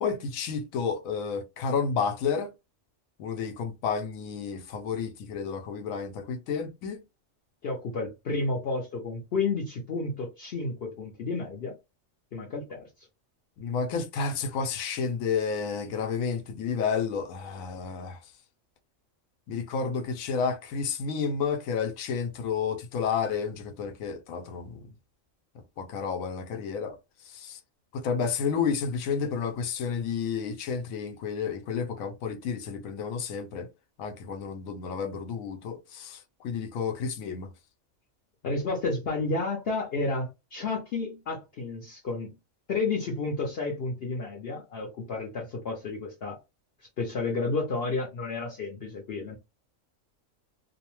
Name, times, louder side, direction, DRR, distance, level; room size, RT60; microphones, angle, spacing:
voice 1, 0.0-2.5 3.2-7.0 13.6-18.2 19.5-24.8 25.8-27.0 27.3-27.6 27.9-33.7 34.0-36.2 36.4-37.5, left 6 dB, 85° left, 1.0 m, -31 dB
voice 2, 7.6-11.7 12.3-12.9 38.4-42.3 42.7-46.4 47.0-49.4, left 3 dB, 55° left, 0.8 m, -31 dB
2.7 x 2.0 x 3.0 m
omnidirectional pair, 1.4 m